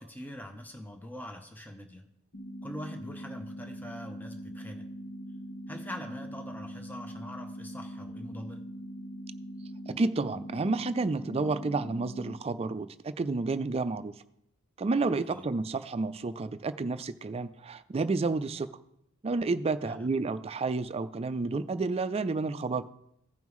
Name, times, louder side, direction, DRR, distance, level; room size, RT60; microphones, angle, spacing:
voice 1, 0.0-2.1 2.6-4.9 5.7-8.6 15.3-15.5 19.8-20.1, equal, 10° left, 4 dB, 0.6 m, -43 dB
sound 1, 2.3-12.3, equal, 55° left, 1.0 m, -42 dB
voice 2, 9.9-14.1 14.8-18.7 19.2-22.8, right 3 dB, 30° right, 11 dB, 0.4 m, -30 dB
16.0 x 5.4 x 3.1 m, 0.79 s
head